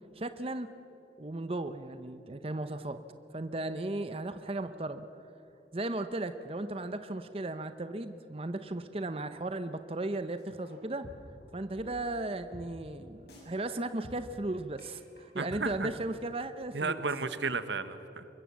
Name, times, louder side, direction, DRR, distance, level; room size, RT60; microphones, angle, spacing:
voice 1, 0.2-0.7 1.2-3.0 3.3-5.1 5.7-11.1 11.5-17.0, right 2 dB, 30° right, 10 dB, 0.8 m, -36 dB
sound 1, 10.4-10.8 11.0-11.4 11.8-11.9 12.2-12.3 12.5-12.7 12.9-13.0 13.3-13.8 14.0-14.4 14.8-14.9 15.2-15.3 15.5-15.6, left 1 dB, 65° left, 6.9 m, -49 dB
voice 2, 15.3-15.9 16.7-18.3, right 4 dB, 85° right, 12 dB, 1.2 m, -33 dB
24.5 x 21.5 x 7.5 m, 2.9 s
head